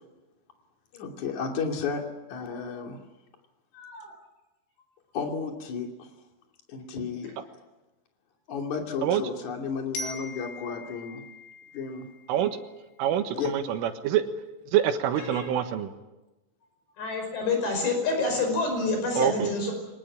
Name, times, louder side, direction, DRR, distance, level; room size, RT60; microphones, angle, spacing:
voice 1, 0.9-2.0 2.3-3.0 5.1-6.1 6.7-7.3 8.5-11.2 11.7-12.1 13.3-13.5, left 5 dB, 45° left, 2 dB, 3.6 m, -33 dB
voice 2, 3.7-4.1 15.3-15.5 17.0-19.7, left 3 dB, 60° left, 4 dB, 7.3 m, -28 dB
Glockenspiel, 9.9-12.8, left 2 dB, 80° left, 5.4 m, -41 dB
voice 3, 13.0-14.3 14.7-15.9 19.2-19.5, right 10 dB, 90° right, 7 dB, 4.0 m, -25 dB
24.5 x 20.5 x 8.8 m, 1.1 s
omnidirectional pair, 5.6 m